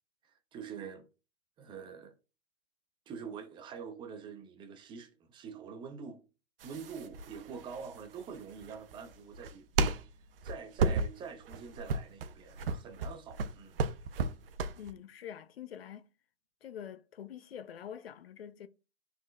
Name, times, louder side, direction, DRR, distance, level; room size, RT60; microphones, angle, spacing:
voice 1, 0.5-1.1 1.6-2.1 3.1-6.2 6.6-9.6 10.4-13.8, right 6 dB, 15° right, 0.5 m, -45 dB
sound 1, 6.6-14.9, right 4 dB, 65° right, 0.7 m, -34 dB
voice 2, 14.7-16.1 16.6-18.7, left 9 dB, 70° left, 0.7 m, -45 dB
11.0 x 3.9 x 2.3 m
hypercardioid pair, 120°, 31 cm